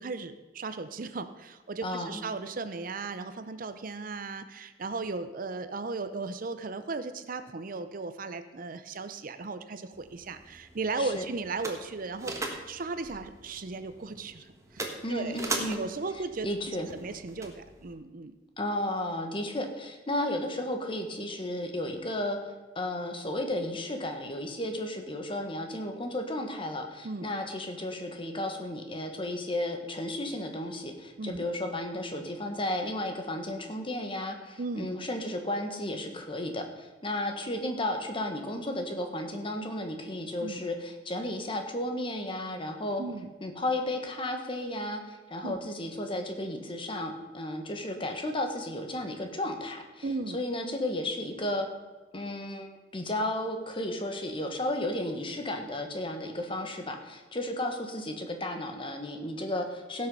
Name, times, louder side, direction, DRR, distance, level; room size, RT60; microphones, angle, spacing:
voice 1, 0.0-18.3 27.0-27.3 31.2-31.4 34.6-34.9 40.4-40.6 43.0-43.3 45.4-45.6 50.0-50.4, right 3 dB, 50° right, 11 dB, 0.6 m, -36 dB
voice 2, 1.8-2.2 11.0-11.2 15.0-15.8 16.4-16.9 18.6-22.4 22.7-43.0 43.4-50.0 50.3-51.7 52.1-60.1, left 1 dB, 30° left, 5 dB, 1.4 m, -33 dB
sound 1, 9.9-17.9, right 2 dB, 20° right, 1.4 m, -40 dB
16.5 x 6.5 x 5.4 m, 1.2 s
head